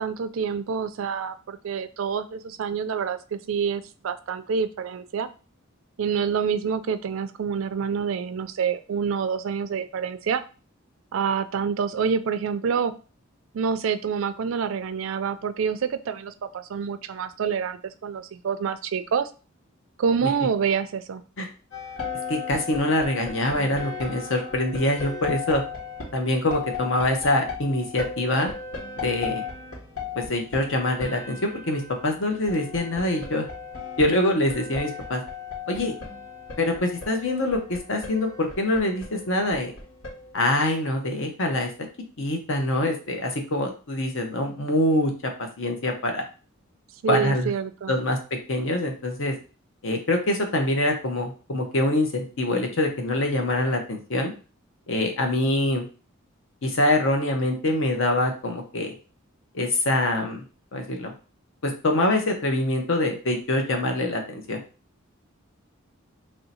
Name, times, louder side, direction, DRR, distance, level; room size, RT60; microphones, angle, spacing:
voice 1, 0.0-5.3 6.0-10.4 11.1-12.9 13.5-19.3 20.0-21.2 47.0-47.9, right 6 dB, 70° right, 11 dB, 0.4 m, -27 dB
sound 1, 21.7-40.3, left 5 dB, 85° left, 1.7 m, -37 dB
voice 2, 22.3-25.6 26.1-28.5 29.0-29.4 30.2-33.5 34.0-35.2 35.7-35.9 36.6-39.7 40.3-41.7 42.2-45.1 45.6-46.2 47.1-47.5 47.9-48.2 48.5-49.3 49.8-54.3 54.9-55.9 56.6-58.9 59.5-60.4 60.7-61.1 61.6-64.6, left 1 dB, 65° left, 3 dB, 0.9 m, -24 dB
3.1 x 2.7 x 4.1 m, 0.36 s
head